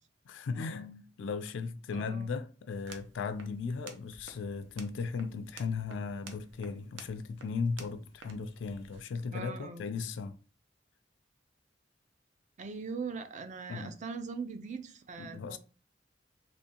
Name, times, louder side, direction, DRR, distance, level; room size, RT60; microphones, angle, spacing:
voice 1, 0.3-10.4 13.7-14.0 15.2-15.6, left 5 dB, 80° left, 0.3 m, -37 dB
voice 2, 1.9-2.3 9.3-9.9 12.6-15.6, right 5 dB, 40° right, 0.4 m, -41 dB
sound 1, 2.7-9.0, right 4 dB, 80° right, 0.6 m, -53 dB
3.4 x 3.0 x 2.8 m
head